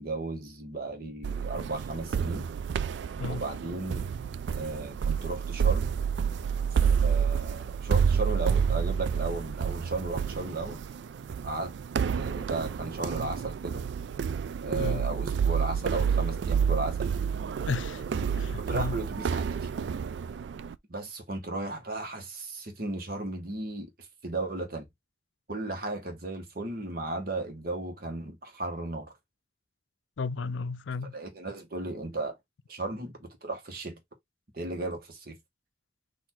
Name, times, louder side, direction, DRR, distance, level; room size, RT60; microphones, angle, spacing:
voice 1, 0.0-2.5 3.3-4.1 4.5-5.9 7.0-10.8 11.4-11.7 12.1-13.8 14.6-17.1 18.6-19.7 20.9-24.9 25.5-29.1 31.1-32.4 32.7-34.0 34.5-35.4, right 2 dB, 50° right, 1.3 m, -35 dB
sound 1, 1.2-20.8, right 7 dB, 70° right, 0.3 m, -29 dB
voice 2, 17.7-19.0 30.2-31.1, left 4 dB, 90° left, 0.5 m, -34 dB
4.1 x 2.7 x 4.4 m
head